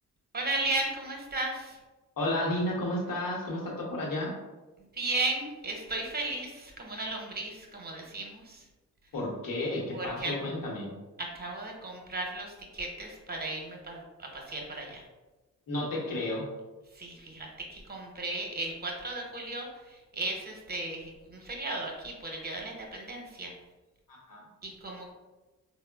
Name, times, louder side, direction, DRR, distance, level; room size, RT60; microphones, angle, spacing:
voice 1, 0.3-1.8 4.9-8.7 9.9-10.3 11.2-15.0 16.9-23.5 24.6-25.1, right 2 dB, 25° right, 0 dB, 0.8 m, -35 dB
voice 2, 2.2-4.3 9.1-10.9 15.7-16.4 24.1-24.4, left 1 dB, 65° left, -2 dB, 1.0 m, -32 dB
3.5 x 2.0 x 2.3 m, 1.2 s
supercardioid pair, 50°, 36 cm